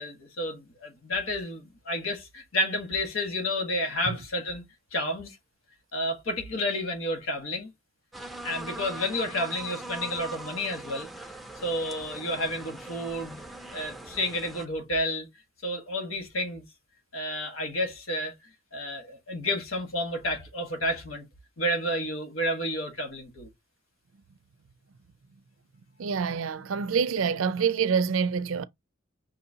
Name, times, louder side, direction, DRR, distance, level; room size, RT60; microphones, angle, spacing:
voice 1, 0.0-4.6 4.9-5.4 5.9-7.7 8.4-11.1 11.6-13.4 13.7-15.3 15.6-16.6 17.1-18.3 18.7-21.2 21.6-23.5, left 1 dB, 90° left, 1.5 m, -30 dB
sound 1, 8.1-14.7, right 2 dB, ahead, 0.5 m, -41 dB
voice 2, 26.0-28.6, right 6 dB, 85° right, 0.4 m, -26 dB
5.8 x 2.8 x 2.7 m
head